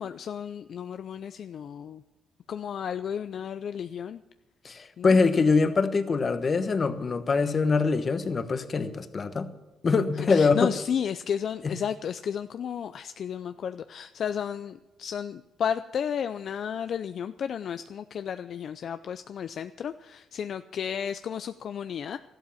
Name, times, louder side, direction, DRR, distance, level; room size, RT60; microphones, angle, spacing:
voice 1, 0.0-2.0 2.5-4.2 5.0-5.2 10.2-22.2, left 8 dB, 60° left, 0.5 m, -33 dB
voice 2, 4.6-9.5 9.8-10.7 11.6-11.8, left 4 dB, 40° left, 1.2 m, -24 dB
13.5 x 11.5 x 7.2 m
cardioid pair, 90°, 0 cm